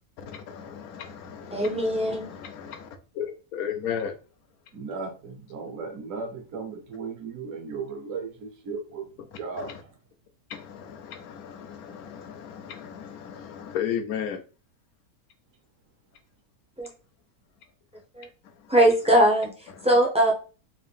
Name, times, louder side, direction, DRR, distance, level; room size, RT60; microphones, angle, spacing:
voice 1, 0.2-2.9 3.1-4.1 9.6-9.8 10.5-14.4 18.6-18.7 19.8-19.9, left 8 dB, 85° left, 7 dB, 1.1 m, -35 dB
voice 2, 1.5-2.3 16.8-16.9 18.1-18.3 18.7-20.3, right 1 dB, 10° right, -2 dB, 0.4 m, -21 dB
voice 3, 4.7-9.1 9.4-9.9, right 4 dB, 65° right, 2 dB, 1.3 m, -36 dB
3.7 x 2.6 x 3.3 m, 0.35 s
omnidirectional pair, 1.5 m